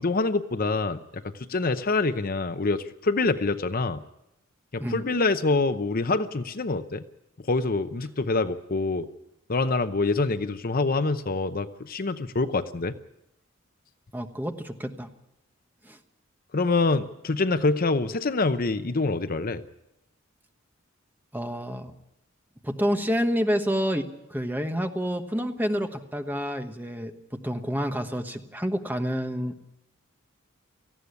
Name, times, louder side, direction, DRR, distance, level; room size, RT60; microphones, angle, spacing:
voice 1, 0.0-4.0 4.7-7.0 7.5-9.1 9.5-12.9 16.5-19.6, left 3 dB, 45° left, 11 dB, 0.7 m, -26 dB
voice 2, 14.1-15.1 15.8-16.0 21.3-21.9 22.6-24.0 24.3-27.1 27.4-29.6, equal, 10° right, 6 dB, 1.2 m, -28 dB
18.5 x 15.0 x 9.6 m, 0.87 s
head